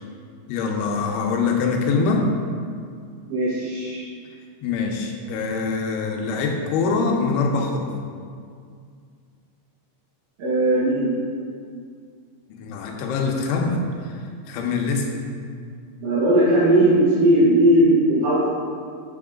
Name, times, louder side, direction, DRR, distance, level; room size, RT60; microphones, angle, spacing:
voice 1, 0.5-2.3 4.6-7.9 12.5-14.1 14.5-15.1, left 4 dB, 80° left, 2 dB, 3.2 m, -24 dB
voice 2, 3.3-4.0 10.4-11.1 16.0-18.4, right 1 dB, 60° right, -12 dB, 3.1 m, -18 dB
7.9 x 7.8 x 3.7 m, 2.2 s
omnidirectional pair, 5.5 m